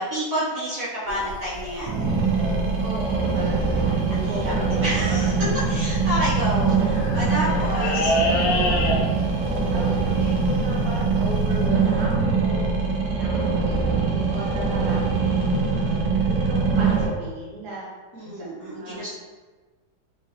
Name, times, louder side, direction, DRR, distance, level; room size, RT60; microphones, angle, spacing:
voice 1, 0.0-2.1 3.6-4.5 4.8-8.1 18.1-19.1, equal, 55° right, -9 dB, 1.2 m, -29 dB
sound 1, 1.1-11.7, left 1 dB, 80° left, 1.3 m, -30 dB
sound 2, 1.9-17.0, right 4 dB, 80° right, 1.3 m, -23 dB
voice 2, 2.8-3.9 4.2-4.7 7.0-7.2 7.8-8.8 9.7-15.0 15.3-17.9 18.2-18.5 18.8-19.1, right 1 dB, 35° right, -7 dB, 0.9 m, -36 dB
4.8 x 2.5 x 2.7 m, 1.3 s
omnidirectional pair, 1.9 m